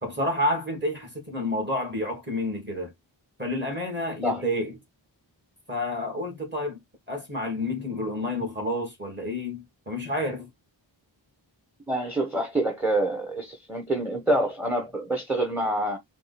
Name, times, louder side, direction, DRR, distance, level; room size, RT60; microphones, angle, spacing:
voice 1, 0.0-2.9 3.4-4.7 5.7-6.8 7.1-10.5, left 1 dB, 25° right, 2.6 m, -29 dB
voice 2, 11.9-16.0, right 1 dB, 5° right, 1.1 m, -26 dB
4.8 x 2.5 x 4.2 m
wide cardioid pair, 90°, 46 cm